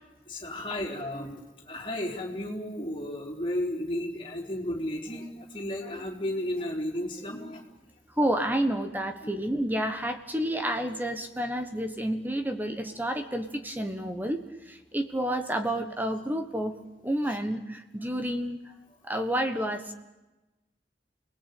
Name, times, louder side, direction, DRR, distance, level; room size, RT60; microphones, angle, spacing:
voice 1, 0.3-7.7, left 1 dB, 30° left, -1 dB, 4.0 m, -33 dB
voice 2, 8.2-16.8 17.0-18.6 19.0-19.9, right 1 dB, 10° right, 6 dB, 1.4 m, -30 dB
28.5 x 20.0 x 8.6 m, 1.1 s
head